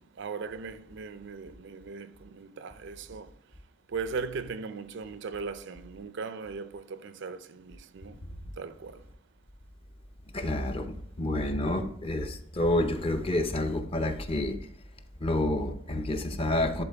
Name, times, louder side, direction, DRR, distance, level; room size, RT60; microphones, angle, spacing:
voice 1, 0.0-3.3 3.9-8.2 8.6-9.0, right 5 dB, 65° right, 0.5 m, -38 dB
voice 2, 10.3-10.9 11.2-14.6 15.2-16.8, left 1 dB, 30° left, 0.6 m, -28 dB
10.5 x 3.9 x 3.5 m
head